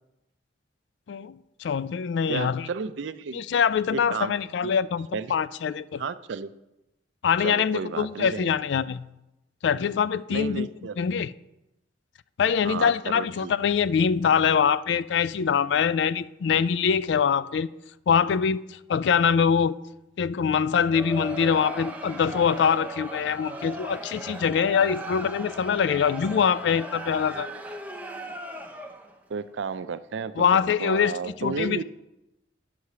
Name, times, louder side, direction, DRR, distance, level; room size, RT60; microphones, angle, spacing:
voice 1, 1.1-2.7 3.3-6.0 7.2-9.1 9.6-10.7 11.0-11.3 12.4-17.7 18.1-19.7 20.2-27.5 30.4-31.1 31.4-31.8, left 7 dB, 65° left, 0.3 m, -24 dB
voice 2, 2.3-3.4 3.9-4.3 4.6-4.8 5.1-5.3 6.0-6.5 7.4-8.5 10.3-11.0 12.6-13.5 29.3-31.8, right 5 dB, 75° right, 0.4 m, -33 dB
Crowd, 20.7-29.2, right 2 dB, 10° right, 0.7 m, -38 dB
9.8 x 4.8 x 6.7 m
head